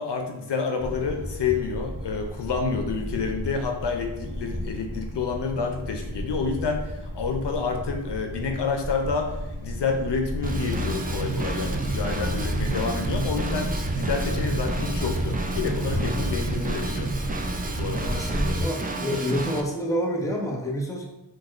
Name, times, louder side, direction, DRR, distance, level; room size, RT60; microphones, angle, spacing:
voice 1, 0.0-17.1 17.7-18.2, left 5 dB, 70° left, 4 dB, 0.5 m, -29 dB
sound 1, 0.8-18.6, equal, 75° right, 0.9 m, -32 dB
Drum kit / Drum, 10.4-19.6, right 3 dB, 20° right, 0.3 m, -30 dB
voice 2, 18.0-21.1, equal, 5° left, -1 dB, 0.7 m, -28 dB
4.1 x 2.3 x 2.4 m, 0.98 s
wide cardioid pair, 50°, 44 cm